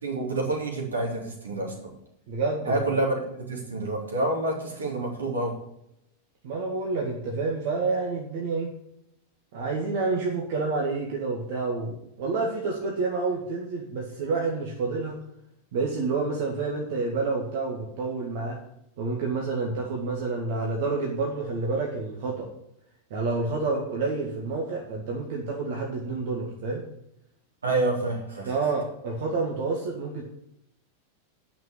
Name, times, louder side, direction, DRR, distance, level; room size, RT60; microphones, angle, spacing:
voice 1, 0.0-1.9 2.6-5.6 27.6-28.5, right 2 dB, 70° right, 0 dB, 3.4 m, -28 dB
voice 2, 2.3-2.8 6.4-8.7 9.5-15.2 15.7-18.6 19.0-22.5 23.1-26.8 28.4-30.2, right 3 dB, 50° right, -1 dB, 2.0 m, -29 dB
10.0 x 6.0 x 8.3 m, 0.78 s
figure-of-eight pair, 90°, 0 cm